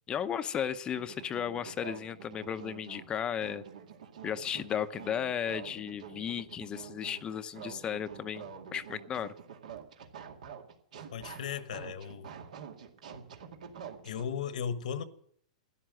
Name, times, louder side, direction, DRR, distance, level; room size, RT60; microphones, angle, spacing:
voice 1, 0.1-3.6 4.2-8.4 8.7-9.3, left 8 dB, 20° left, 0.6 m, -35 dB
sound 1, 0.9-14.2, right 7 dB, 75° right, 2.2 m, -47 dB
voice 2, 11.1-12.3 14.0-15.1, left 7 dB, 75° left, 1.2 m, -36 dB
12.5 x 11.0 x 7.6 m
hypercardioid pair, 135°, 4 cm